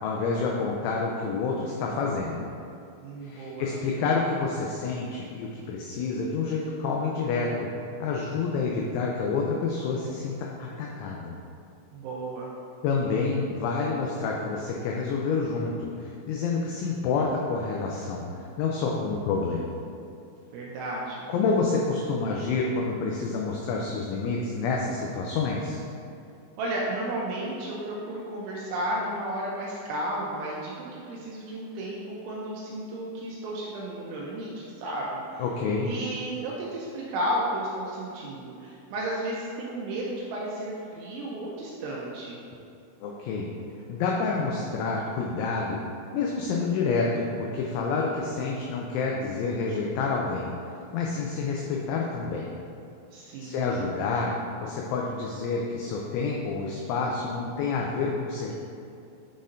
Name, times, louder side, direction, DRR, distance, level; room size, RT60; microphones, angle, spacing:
voice 1, 0.0-2.5 3.2-7.7 8.0-11.3 12.8-19.8 21.3-25.8 35.4-35.9 43.0-43.5 43.9-45.8 46.1-50.5 50.9-52.5 53.4-54.3 54.6-58.5, left 4 dB, 90° left, -1 dB, 2.7 m, -28 dB
voice 2, 3.0-3.7 11.9-12.5 20.5-21.3 26.6-35.4 35.8-42.4 53.1-53.7, right 1 dB, 80° right, -4 dB, 2.8 m, -33 dB
10.0 x 4.2 x 2.5 m, 2.5 s
omnidirectional pair, 6.0 m